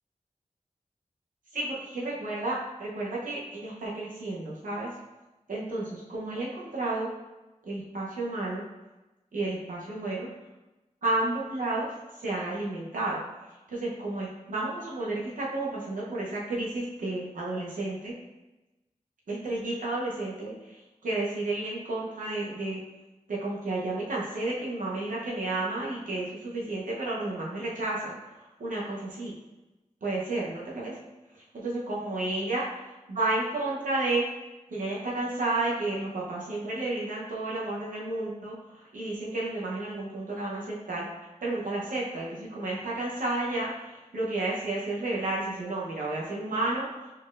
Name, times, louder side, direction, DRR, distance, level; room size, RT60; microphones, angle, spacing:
voice 1, 1.5-4.9 5.5-7.1 7.6-8.6 9.3-10.3 11.0-11.9 12.2-13.2 13.7-18.1 19.3-22.8 23.3-28.1 28.6-29.3 30.0-31.0 31.5-34.2 34.7-41.1 41.4-46.9, right 2 dB, 85° right, -5 dB, 0.8 m, -31 dB
4.2 x 4.1 x 2.5 m, 1.1 s
wide cardioid pair, 85°, 14 cm